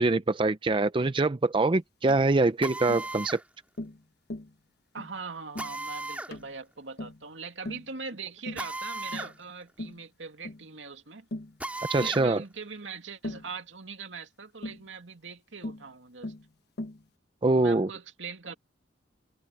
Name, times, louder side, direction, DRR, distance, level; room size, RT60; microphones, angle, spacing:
voice 1, 0.0-3.4 11.9-12.4 17.4-17.9, right 2 dB, 30° right, 0.5 m, -24 dB
Tap, 2.1-2.3 2.9-3.1 3.8-4.0 4.3-4.5 5.0-5.2 5.5-5.8 6.3-6.5 7.0-7.2 7.6-7.9 8.5-8.7 9.1-9.4 9.8-10.0 10.4-10.6 11.3-11.6 12.0-12.2 13.2-13.5 14.6-14.8 15.6-15.9 16.2-16.5 16.8-17.0, left 1 dB, 60° left, 1.2 m, -39 dB
Drill, 2.6-3.4 5.6-6.3 8.6-9.3 9.7-9.8 11.6-12.3, right 2 dB, 10° right, 2.2 m, -36 dB
voice 2, 4.9-11.3 12.0-16.3 17.5-18.5, right 5 dB, 85° right, 2.5 m, -41 dB
head